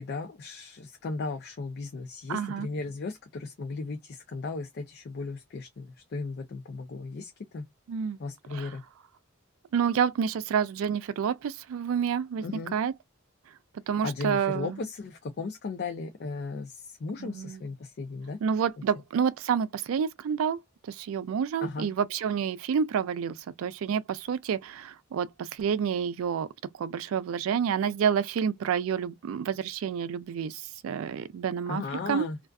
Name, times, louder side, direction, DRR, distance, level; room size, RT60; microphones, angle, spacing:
voice 1, 0.0-7.7 8.2-8.8 12.4-12.7 14.0-18.4 21.6-21.9 31.7-32.4, left 3 dB, 50° left, 0.4 m, -36 dB
voice 2, 2.3-2.7 7.9-8.2 8.5-8.7 9.7-12.4 12.7-12.9 13.9-14.8 17.2-17.6 18.4-20.6 20.9-26.5 26.8-32.3, right 7 dB, 80° right, 0.3 m, -29 dB
2.4 x 2.3 x 2.2 m
head